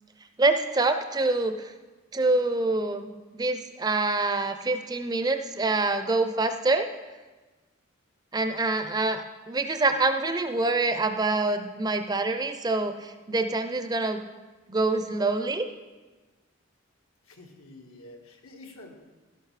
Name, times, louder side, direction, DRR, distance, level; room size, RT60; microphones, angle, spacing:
voice 1, 0.4-1.7 2.1-6.9 8.3-14.2 14.7-15.6, right 2 dB, 20° right, 8 dB, 0.4 m, -26 dB
voice 2, 17.3-18.9, left 2 dB, 90° left, 2 dB, 1.5 m, -48 dB
12.0 x 11.0 x 3.2 m, 1.3 s
head